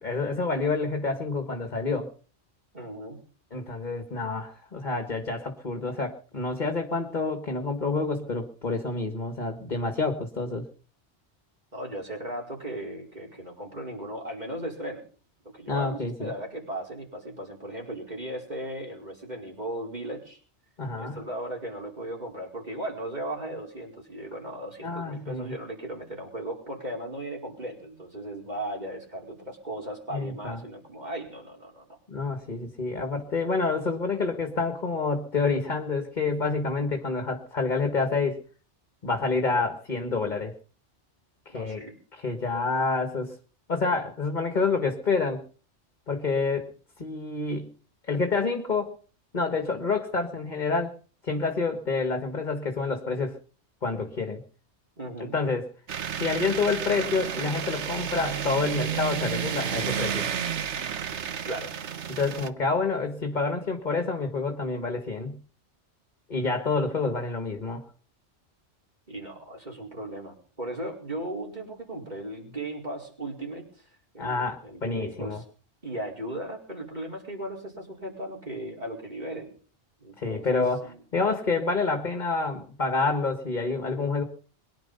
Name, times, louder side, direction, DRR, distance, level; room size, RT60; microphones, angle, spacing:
voice 1, 0.0-2.1 3.5-10.7 15.7-16.3 20.8-21.2 24.8-25.5 30.1-30.6 32.1-38.4 39.0-40.5 41.5-41.8 42.1-43.4 43.7-45.4 46.1-46.7 47.0-47.7 48.0-49.0 49.3-50.9 51.2-53.4 53.8-54.4 55.3-55.6 56.2-60.2 62.1-65.4 66.3-67.8 74.2-75.4 80.2-80.8 81.1-84.2, left 4 dB, 40° left, 6 dB, 1.8 m, -28 dB
voice 2, 2.7-3.2 11.7-15.0 15.4-20.4 21.0-32.0 41.5-42.0 55.0-55.4 61.4-61.7 69.1-75.4 75.8-79.6 80.0-81.0, right 1 dB, 40° right, 0 dB, 5.1 m, -37 dB
sound 1, 55.9-62.5, right 8 dB, 80° right, 1.3 m, -31 dB
22.5 x 10.5 x 5.6 m, 0.40 s
omnidirectional pair, 1.2 m